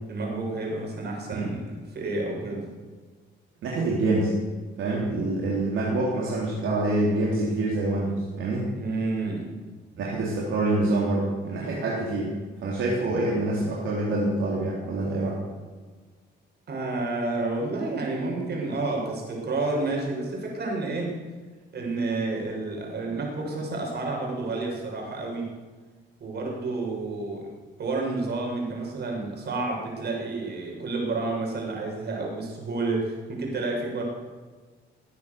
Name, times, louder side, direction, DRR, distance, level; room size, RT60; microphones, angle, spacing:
voice 1, 0.1-2.7 8.8-9.5 16.7-21.2 21.7-25.5 26.2-27.5 27.8-34.0, right 3 dB, 55° right, 0 dB, 6.5 m, -30 dB
voice 2, 3.6-4.3 4.8-8.7 9.9-15.4, right 2 dB, 75° right, -4 dB, 3.8 m, -26 dB
20.5 x 9.5 x 6.9 m, 1.4 s
cardioid pair, 90°, 20 cm